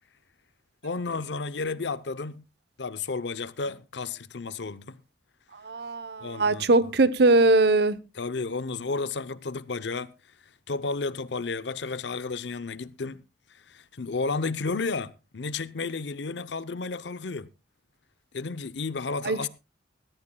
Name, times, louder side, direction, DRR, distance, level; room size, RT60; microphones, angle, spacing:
voice 1, 0.8-2.4 2.8-5.0 6.2-6.9 8.1-10.1 10.7-13.2 13.5-17.5 18.3-19.5, left 4 dB, 70° left, 0.7 m, -32 dB
voice 2, 5.6-8.0 19.2-19.5, right 2 dB, 60° right, 0.8 m, -21 dB
20.0 x 13.5 x 2.3 m
head